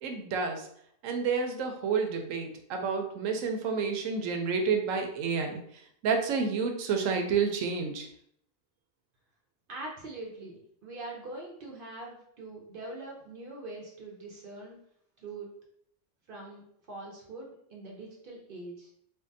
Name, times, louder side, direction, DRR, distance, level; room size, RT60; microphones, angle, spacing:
voice 1, 0.0-0.7 1.0-5.6 6.0-8.1, right 5 dB, 85° right, 4 dB, 1.0 m, -29 dB
voice 2, 9.7-14.8 15.2-15.5 16.3-16.6 16.9-18.9, right 2 dB, 55° right, -1 dB, 0.6 m, -43 dB
3.5 x 2.2 x 2.5 m, 0.68 s
omnidirectional pair, 1.3 m